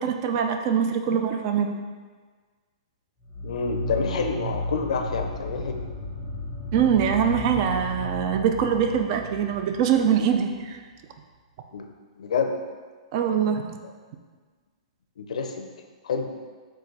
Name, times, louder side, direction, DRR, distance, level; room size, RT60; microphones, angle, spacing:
voice 1, 0.0-1.7 6.7-10.8 13.1-13.8, right 7 dB, 40° right, 6 dB, 0.3 m, -23 dB
sound 1, 3.2-10.5, equal, 15° right, 1.0 m, -34 dB
voice 2, 3.4-5.8 11.7-11.9 12.1-12.6 13.8-13.9 15.2-15.7 16.0-16.3, left 5 dB, 80° left, 4 dB, 0.5 m, -28 dB
3.7 x 2.5 x 4.0 m, 1.5 s
hypercardioid pair, 150°, 4 cm